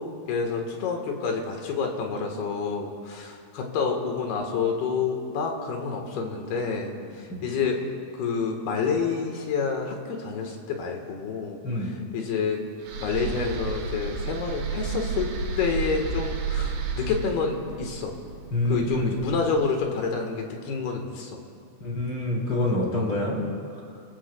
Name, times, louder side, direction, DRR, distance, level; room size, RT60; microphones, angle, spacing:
voice 1, 0.0-7.8 8.1-12.6 13.0-15.3 15.6-18.2 18.7-21.4, left 5 dB, 75° left, 2 dB, 3.3 m, -28 dB
sound 1, 12.8-20.0, right 4 dB, 85° right, 3.5 m, -32 dB
voice 2, 18.5-19.1 21.8-23.4, left 1 dB, 30° left, -4 dB, 3.4 m, -26 dB
30.0 x 16.0 x 2.3 m, 2.4 s
omnidirectional pair, 4.7 m